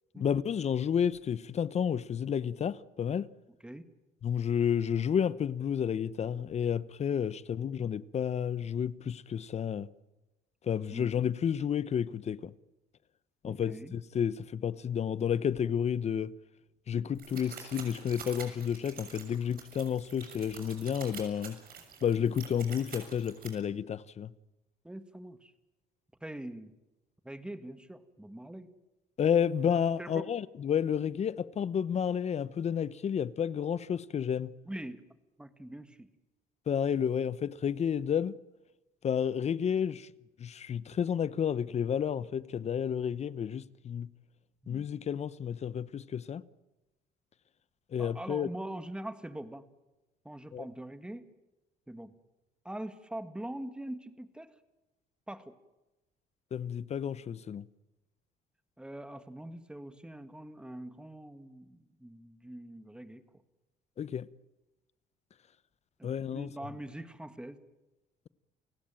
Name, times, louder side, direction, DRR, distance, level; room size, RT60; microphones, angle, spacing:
voice 1, 0.2-3.3 4.2-9.9 10.6-12.5 13.4-16.3 16.9-21.6 22.0-24.3 29.2-34.5 36.7-38.4 39.0-40.1 40.4-44.1 44.7-46.4 47.9-48.5 50.5-50.7 56.5-57.7 64.0-64.3 66.0-66.5, left 8 dB, 40° left, 0.8 m, -31 dB
voice 2, 13.4-13.9 24.8-25.5 26.2-26.7 27.2-28.7 30.0-30.3 34.7-35.0 35.4-36.1 44.6-44.9 48.0-49.6 50.3-51.2 51.9-52.1 52.7-54.5 55.3-55.6 58.8-63.2 66.0-67.6, right 1 dB, 5° right, 1.9 m, -43 dB
sound 1, 17.2-23.5, right 7 dB, 60° right, 6.7 m, -47 dB
29.5 x 16.5 x 9.0 m
cardioid pair, 110°, 17 cm